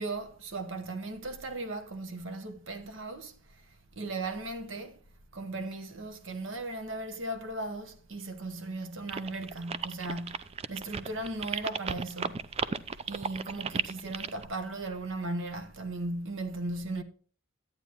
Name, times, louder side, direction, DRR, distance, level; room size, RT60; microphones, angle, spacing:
voice 1, 0.0-3.3 4.0-5.0 5.3-12.4 13.1-17.0, right 2 dB, 75° right, 0.9 m, -37 dB
sound 1, 9.1-14.5, right 6 dB, 30° right, 0.3 m, -34 dB
11.5 x 8.9 x 2.9 m
head